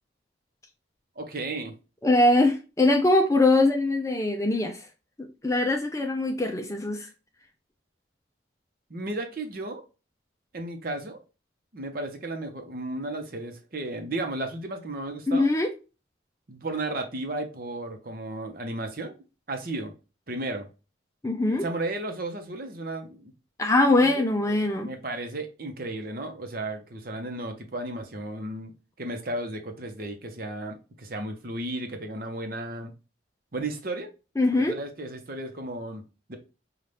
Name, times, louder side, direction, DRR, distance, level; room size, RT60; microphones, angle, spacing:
voice 1, 1.2-1.7 8.9-9.8 10.5-11.2 11.7-15.5 16.5-19.9 20.3-20.7 21.6-23.3 24.1-32.9 33.5-34.1 34.5-36.4, right 2 dB, 50° right, 0.8 m, -34 dB
voice 2, 2.0-4.9 5.2-7.1 15.3-15.7 21.2-21.7 23.6-24.9 34.4-34.7, left 2 dB, 15° left, 0.5 m, -22 dB
5.5 x 2.4 x 3.3 m
head